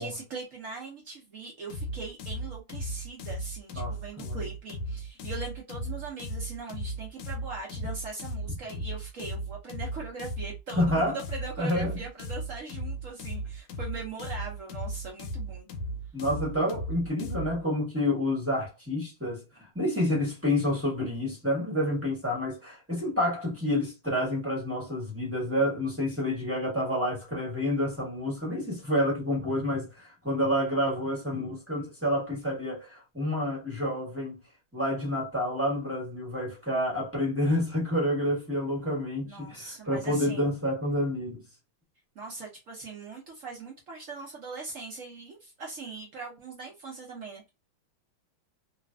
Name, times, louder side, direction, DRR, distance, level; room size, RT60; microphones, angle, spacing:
voice 1, 0.0-15.7 39.2-40.5 42.2-47.5, right 3 dB, 75° right, 0.7 m, -41 dB
sound 1, 1.7-17.6, equal, 75° left, 1.2 m, -36 dB
voice 2, 3.7-4.4 10.8-11.2 11.6-12.0 16.1-34.4 34.7-41.4, left 1 dB, 10° right, 0.7 m, -29 dB
3.2 x 2.4 x 2.2 m
omnidirectional pair, 2.3 m